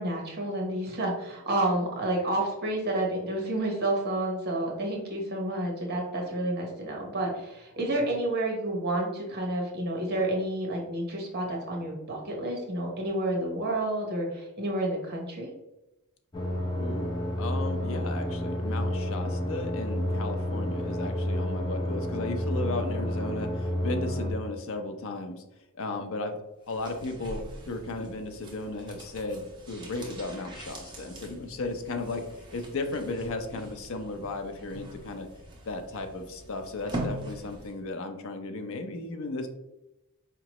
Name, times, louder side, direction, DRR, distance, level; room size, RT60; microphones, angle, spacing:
voice 1, 0.0-15.5, right 1 dB, 45° right, 0 dB, 1.1 m, -30 dB
sound 1, 16.3-24.3, left 1 dB, 20° left, 0.7 m, -30 dB
voice 2, 16.8-25.4 25.8-26.4 26.7-32.3 32.5-35.3 35.7-39.5, left 2 dB, 65° left, 6 dB, 0.6 m, -35 dB
sound 2, 26.6-37.8 38.1-38.2, right 1 dB, 20° right, 0.9 m, -42 dB
4.6 x 2.9 x 3.0 m, 0.95 s
head